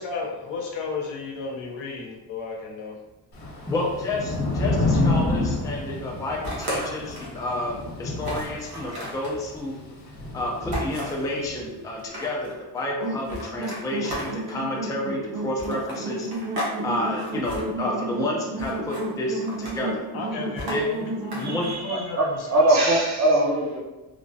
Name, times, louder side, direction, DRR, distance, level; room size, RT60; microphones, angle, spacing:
voice 1, 0.0-3.0 20.1-22.6, left 4 dB, 85° left, 0 dB, 0.8 m, -34 dB
Thunder / Rain, 3.3-11.7, left 2 dB, 60° left, 1.0 m, -29 dB
voice 2, 3.7-9.7 10.3-16.3 16.8-20.1 20.7-20.9 21.3-21.7, left 1 dB, 10° left, -2 dB, 0.3 m, -30 dB
sound 1, 6.4-7.4 7.8-7.9 8.2-9.4 10.7-11.3 11.9-12.5 13.2-14.6 15.6-16.8 17.0-17.6 18.6-19.1 19.4-19.9 20.6-21.7, equal, 55° right, 1.1 m, -34 dB
sound 2, 13.0-21.7, right 2 dB, 70° right, 0.7 m, -32 dB
voice 3, 21.4-23.8, right 2 dB, 40° right, -3 dB, 0.7 m, -22 dB
3.3 x 2.1 x 2.6 m, 1.1 s
cardioid pair, 125°, 45 cm